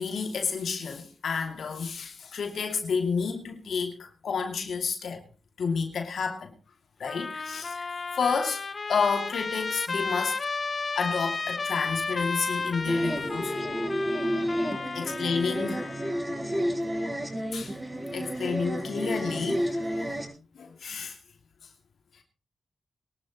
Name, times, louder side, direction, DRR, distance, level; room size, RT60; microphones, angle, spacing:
voice 1, 0.0-5.2 5.6-6.5 7.0-8.6 8.9-10.4 11.0-13.5 14.9-15.8 17.5-17.7 18.1-19.7 20.5-21.2, left 5 dB, 75° left, 2.7 m, -30 dB
Trumpet, 7.0-16.2, left 4 dB, 45° left, 1.2 m, -33 dB
sound 1, 12.8-20.3, equal, 25° right, 7.0 m, -30 dB
23.0 x 12.0 x 3.1 m
cardioid pair, 55°, 0 cm